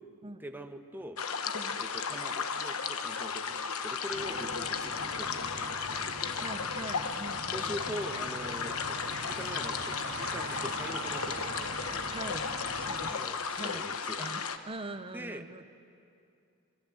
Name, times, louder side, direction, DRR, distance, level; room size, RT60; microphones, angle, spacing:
voice 1, 0.4-1.2 1.8-6.6 7.5-11.7 13.1-14.3 15.1-15.4, equal, 10° right, 5 dB, 1.3 m, -43 dB
sound 1, 1.2-14.6, left 6 dB, 70° left, 1.2 m, -35 dB
voice 2, 1.5-1.8 6.4-8.0 12.1-12.5 12.8-13.8 14.2-15.6, right 2 dB, 25° right, 11 dB, 0.9 m, -43 dB
sound 2, 4.1-13.1, right 3 dB, 55° right, 1.9 m, -43 dB
26.0 x 23.5 x 7.8 m, 2.5 s
head